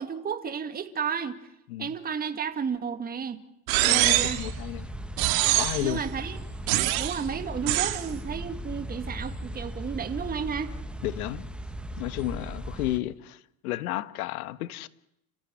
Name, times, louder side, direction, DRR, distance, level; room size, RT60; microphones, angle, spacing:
voice 1, 0.0-1.4 1.8-3.4 3.8-4.4 5.8-6.4 7.0-10.7, right 6 dB, 20° right, 9 dB, 2.1 m, -32 dB
sound 1, 3.7-4.5 5.2-5.9 6.7-7.2 7.7-8.0, right 17 dB, 65° right, 2.4 m, -24 dB
voice 2, 3.8-4.9 5.6-6.0 11.0-11.5 12.0-14.9, left 16 dB, 75° left, 15 dB, 1.5 m, -32 dB
sound 2, 4.0-13.0, right 1 dB, ahead, 1.5 m, -37 dB
30.0 x 15.0 x 10.0 m, 0.81 s
supercardioid pair, 130°, 43 cm